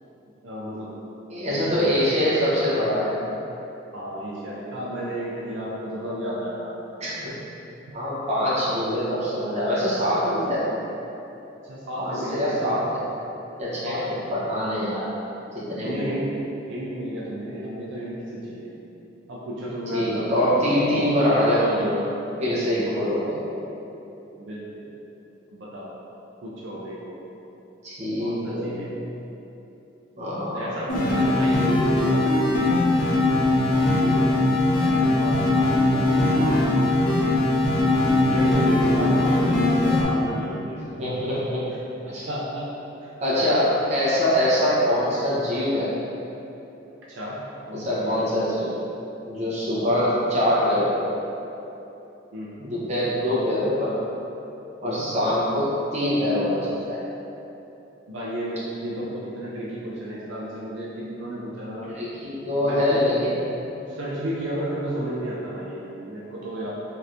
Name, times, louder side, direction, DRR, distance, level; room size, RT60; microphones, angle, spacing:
voice 1, 0.4-0.9 1.4-2.0 3.9-6.7 11.7-12.8 13.8-14.1 15.8-16.3 16.7-18.7 19.3-20.4 22.5-23.0 24.3-24.8 25.5-25.9 26.4-27.2 28.2-28.9 30.5-32.3 33.8-34.3 34.8-37.1 38.3-40.8 42.1-42.7 47.2-47.4 47.7-48.3 52.3-52.5 54.8-55.1 58.1-61.9 62.6-63.0 63.9-66.7, right 1 dB, 75° right, -6 dB, 0.4 m, -32 dB
voice 2, 1.3-3.2 7.0-7.3 7.9-10.7 12.0-13.0 13.6-15.1 15.5-16.1 19.9-22.1 22.4-23.4 27.8-28.9 30.2-30.7 39.1-39.2 41.0-41.6 42.1-42.2 43.2-45.9 47.7-48.8 49.3-51.0 52.6-54.0 54.8-57.0 61.9-63.4, left 1 dB, 35° right, -9 dB, 0.8 m, -24 dB
sound 1, 30.9-40.0, left 2 dB, 50° left, 0.5 m, -20 dB
3.2 x 2.8 x 2.5 m, 3.0 s
head